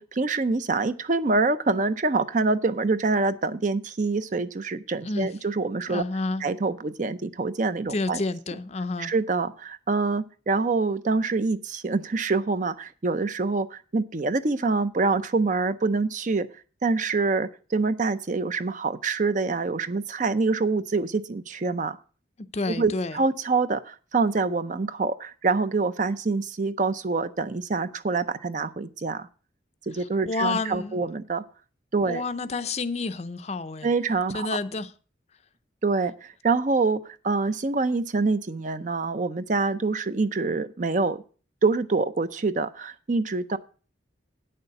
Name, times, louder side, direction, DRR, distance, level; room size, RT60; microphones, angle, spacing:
voice 1, 0.0-6.0 6.4-8.2 9.0-16.5 16.8-22.0 22.7-29.3 29.9-31.4 31.9-32.2 33.8-34.6 35.8-41.2 41.6-43.6, right 3 dB, 40° right, 0.5 m, -26 dB
voice 2, 5.9-6.4 7.9-9.1 22.5-23.2 30.3-31.0 32.0-33.9 34.3-34.9, left 3 dB, 35° left, 0.5 m, -29 dB
8.9 x 6.7 x 6.6 m
head